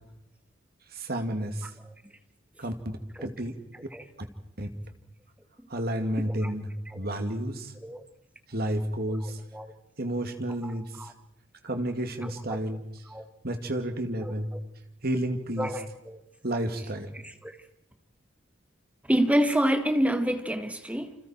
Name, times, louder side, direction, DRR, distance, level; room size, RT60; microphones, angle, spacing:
voice 1, 0.9-1.7 2.6-3.6 4.6-4.7 5.7-6.7 6.9-7.7 8.5-9.4 10.0-11.1 11.6-13.0 13.4-14.5 15.0-15.7 16.4-17.1, right 1 dB, 50° right, 2.5 m, -31 dB
voice 2, 9.2-9.7 10.6-10.7 11.0-11.1 12.2-12.6 13.1-13.2 15.6-16.2 17.4-17.6 19.1-21.1, equal, 5° right, 1.6 m, -27 dB
29.0 x 27.0 x 4.5 m
head